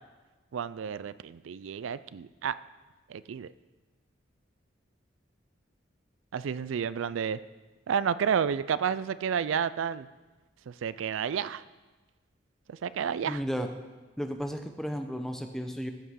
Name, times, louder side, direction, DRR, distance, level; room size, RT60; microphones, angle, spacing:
voice 1, 0.5-2.5 3.1-3.5 6.3-7.4 7.9-10.1 10.7-11.6 12.7-13.4, right 7 dB, 90° right, 16 dB, 0.4 m, -30 dB
voice 2, 13.3-13.7 14.2-15.9, equal, ahead, 5 dB, 0.7 m, -33 dB
14.0 x 5.8 x 6.3 m, 1.2 s
head